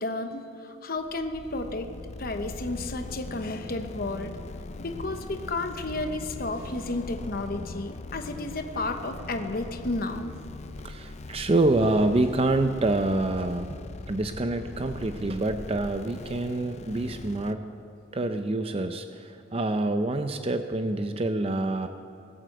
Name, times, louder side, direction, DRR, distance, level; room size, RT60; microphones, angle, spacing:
voice 1, 0.0-1.9 2.2-4.3 4.8-10.3, left 2 dB, 50° left, 6 dB, 1.0 m, -32 dB
sound 1, 1.0-17.5, left 2 dB, 35° left, 0.5 m, -41 dB
voice 2, 10.8-13.8 14.1-17.7 18.1-21.9, right 2 dB, 30° right, 7 dB, 0.5 m, -26 dB
20.0 x 7.7 x 7.8 m, 2.6 s
head